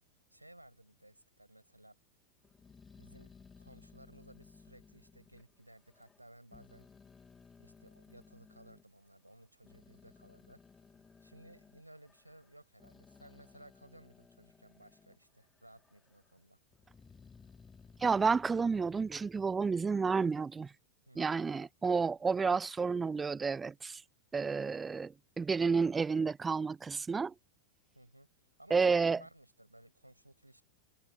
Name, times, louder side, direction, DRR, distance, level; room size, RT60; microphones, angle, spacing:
voice 1, 0.3-2.0 3.0-6.9 7.6-10.6 11.2-16.6 21.1-21.4 27.9-28.3 28.6-30.6, right 1 dB, 85° right, 5.9 m, -58 dB
Growling, 2.4-6.2 6.5-8.8 9.4-15.2 15.6-16.3 16.7-20.5, left 5 dB, 15° left, 2.3 m, -59 dB
voice 2, 18.0-20.7 21.2-24.0 24.3-27.3 28.7-29.2, right 5 dB, 15° right, 0.3 m, -30 dB
figure-of-eight pair, 90°, 0 cm